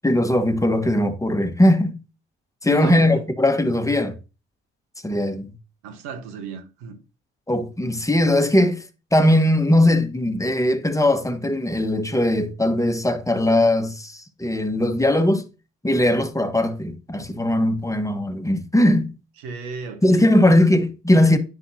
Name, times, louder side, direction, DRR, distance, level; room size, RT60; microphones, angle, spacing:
voice 1, 0.0-1.9 2.6-4.2 5.0-5.5 7.5-8.8 9.1-15.5 15.8-19.1 20.0-21.4, left 1 dB, 10° left, 1.2 m, -19 dB
voice 2, 2.6-3.2 5.8-7.0 19.4-20.6, right 6 dB, 90° right, 1.2 m, -34 dB
9.8 x 5.7 x 2.7 m
hypercardioid pair, 50°, 29 cm